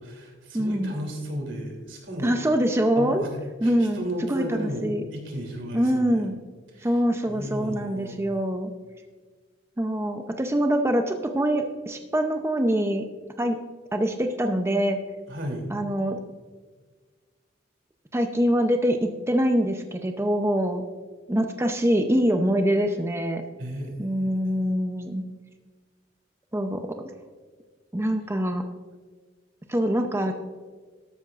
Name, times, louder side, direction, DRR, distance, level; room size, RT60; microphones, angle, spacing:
voice 1, 0.0-2.4 3.0-6.2 6.7-7.0 7.2-8.2 15.3-15.6 23.6-23.9 24.3-24.4, equal, 85° right, 0 dB, 3.0 m, -34 dB
voice 2, 0.5-0.9 2.2-3.2 3.6-4.0 4.3-5.0 5.7-6.4 6.8-8.7 9.8-13.1 13.4-13.6 13.9-15.0 15.7-16.2 18.1-20.9 21.3-23.4 24.0-25.3 26.5-27.1 27.9-28.6 29.7-30.3, equal, 15° right, 5 dB, 0.6 m, -24 dB
13.0 x 12.5 x 2.5 m, 1.4 s
head